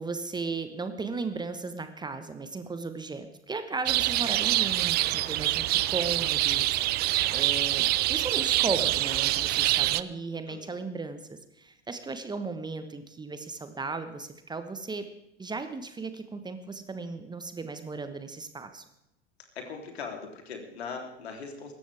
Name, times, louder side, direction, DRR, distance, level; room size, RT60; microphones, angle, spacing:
voice 1, 0.0-15.0 15.4-18.8, right 3 dB, 15° right, 9 dB, 1.3 m, -36 dB
sound 1, 3.9-10.0, right 16 dB, 30° right, 0.5 m, -25 dB
voice 2, 10.5-10.8 19.5-21.7, left 5 dB, 70° left, 2 dB, 3.5 m, -40 dB
24.0 x 13.0 x 3.5 m, 0.85 s
figure-of-eight pair, 85°, 33 cm